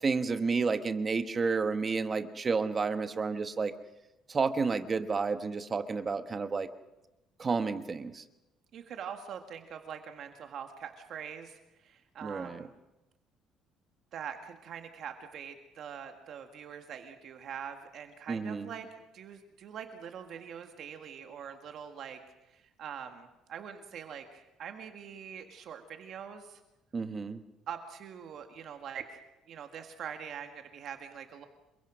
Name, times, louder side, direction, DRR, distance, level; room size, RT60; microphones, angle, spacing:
voice 1, 0.0-3.7 4.3-6.7 7.4-8.2 12.2-12.6 18.3-18.7 26.9-27.4, right 4 dB, 25° right, 9 dB, 1.2 m, -31 dB
voice 2, 8.7-12.7 14.1-22.2 22.5-26.6 27.7-29.2 29.5-31.4, right 8 dB, 50° right, 6 dB, 1.8 m, -44 dB
27.5 x 23.0 x 6.2 m, 0.96 s
cardioid pair, 155°, 0 cm